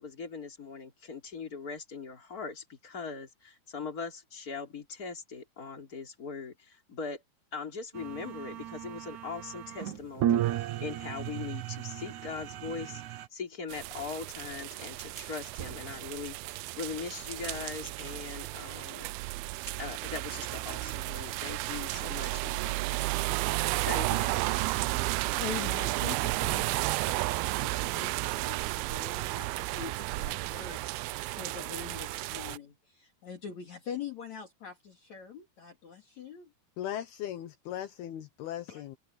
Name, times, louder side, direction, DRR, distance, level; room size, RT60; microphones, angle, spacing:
voice 1, 0.0-7.2 7.5-13.0 13.3-19.1 19.8-22.8 23.8-24.6, left 5 dB, 20° left, 3.7 m, -40 dB
sound 1, 7.9-13.3, right 11 dB, 70° right, 1.9 m, -34 dB
sound 2, 13.7-32.6, right 20 dB, 85° right, 2.1 m, -33 dB
voice 2, 25.3-36.5 38.7-38.8, left 7 dB, 50° left, 3.1 m, -43 dB
voice 3, 36.8-39.0, left 11 dB, 75° left, 2.9 m, -38 dB
open air
omnidirectional pair, 4.8 m